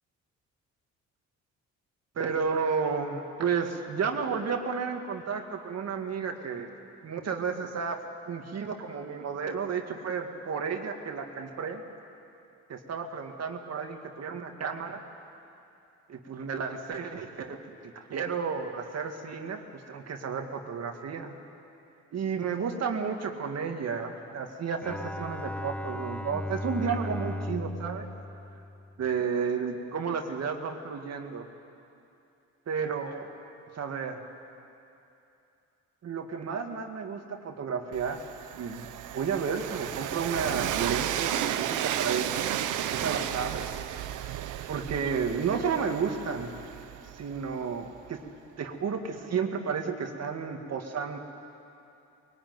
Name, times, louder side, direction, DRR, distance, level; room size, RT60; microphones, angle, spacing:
voice 1, 2.2-6.7 7.0-8.0 8.3-11.8 12.7-15.0 16.1-17.6 18.0-21.4 22.1-28.1 29.0-31.5 32.7-33.3 33.7-34.3 36.0-38.2 38.5-38.9 39.1-42.5 42.9-43.8 44.7-46.5 47.1-48.2 48.6-51.2, right 6 dB, 55° right, 4 dB, 2.0 m, -32 dB
Bowed string instrument, 24.8-29.3, left 1 dB, 5° left, 0.5 m, -36 dB
Train, 37.9-47.8, right 11 dB, 90° right, 0.9 m, -33 dB
21.0 x 18.5 x 9.5 m, 2.7 s
cardioid pair, 90°, 30 cm